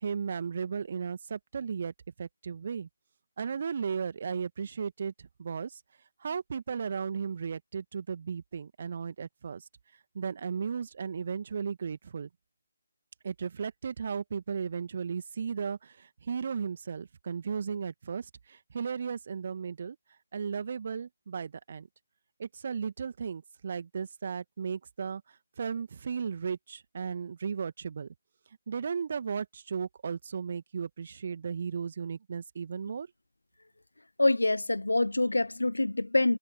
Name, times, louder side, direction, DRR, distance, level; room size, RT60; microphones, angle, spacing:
voice 1, 0.0-1.9 2.2-2.9 3.4-5.8 6.2-9.7 10.1-12.3 13.2-20.0 20.3-21.9 22.4-28.1 28.7-33.1, right 6 dB, 40° right, 1.9 m, -35 dB
voice 2, 34.2-36.4, left 2 dB, 70° left, 0.3 m, -25 dB
figure-of-eight pair, 150°, 0 cm